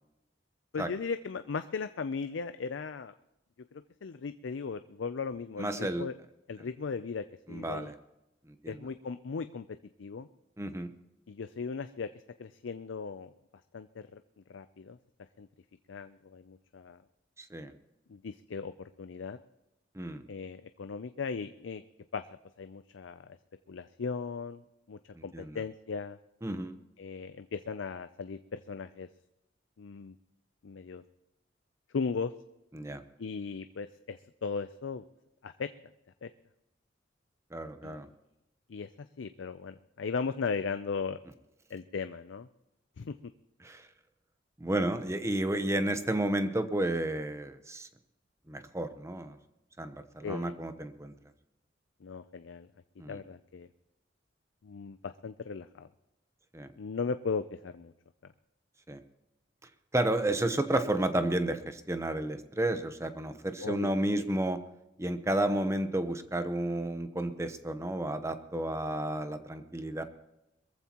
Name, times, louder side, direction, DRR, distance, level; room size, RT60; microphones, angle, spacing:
voice 1, 0.7-3.1 3.7-6.1 6.5-7.9 8.7-9.7 10.0-10.3 11.3-12.1 12.4-13.3 13.7-14.2 14.5-15.0 15.4-15.5 15.9-17.0 18.1-19.4 20.3-21.8 22.1-22.2 22.6-23.4 23.7-24.6 24.9-26.2 27.0-29.1 29.8-30.1 30.6-31.0 31.9-32.3 33.2-35.0 35.4-35.7 36.2-36.3 37.8-38.0 38.7-41.2 41.7-42.5 43.0-43.1 50.2-50.5 52.0-52.7 53.1-53.7 54.6-55.9 56.8-57.9 58.2-58.3 63.6-63.9, left 5 dB, 90° left, 10 dB, 0.5 m, -37 dB
voice 2, 5.6-6.1 7.5-7.9 8.5-8.8 10.6-10.9 17.4-17.7 19.9-20.2 25.1-25.6 26.4-26.7 32.7-33.0 37.5-38.1 43.6-43.9 44.6-47.9 48.5-49.4 49.8-51.1 53.0-53.2 56.5-56.7 58.9-59.0 59.9-64.6 65.0-70.0, right 1 dB, 15° right, 9 dB, 0.9 m, -32 dB
22.0 x 14.5 x 3.0 m, 0.92 s
head